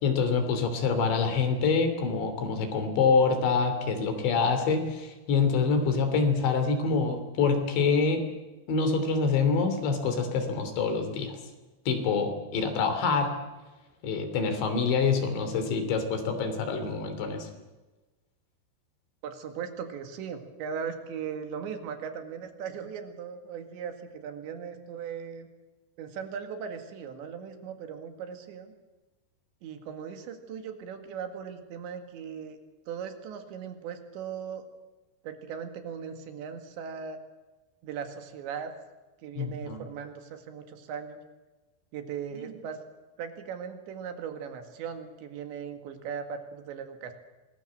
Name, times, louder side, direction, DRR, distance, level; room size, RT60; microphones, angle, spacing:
voice 1, 0.0-8.2 8.7-11.4 11.9-13.3 14.0-17.5 39.4-39.8 42.3-42.5, left 5 dB, 85° left, 7 dB, 5.4 m, -26 dB
voice 2, 19.2-25.5 26.0-28.7 29.6-32.6 32.9-34.7 35.2-37.2 37.8-38.7 39.2-41.2 41.9-42.8 43.2-47.1, right 7 dB, 85° right, 7 dB, 4.3 m, -38 dB
25.5 x 20.5 x 7.6 m, 1.2 s
omnidirectional pair, 5.0 m